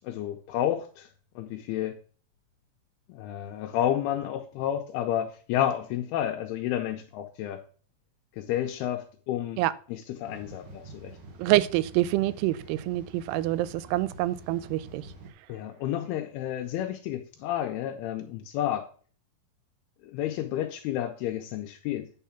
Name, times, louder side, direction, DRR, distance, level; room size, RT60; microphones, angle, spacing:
voice 1, 0.0-1.1 1.4-2.0 3.1-7.6 8.4-9.6 9.9-11.1 15.5-18.9 20.0-22.1, left 11 dB, 80° left, 3 dB, 2.6 m, -31 dB
sound 1, 10.2-15.3, right 2 dB, 60° right, 2.7 m, -46 dB
voice 2, 11.4-15.0, right 16 dB, 90° right, 17 dB, 2.6 m, -26 dB
9.1 x 4.7 x 5.7 m, 0.42 s
omnidirectional pair, 4.6 m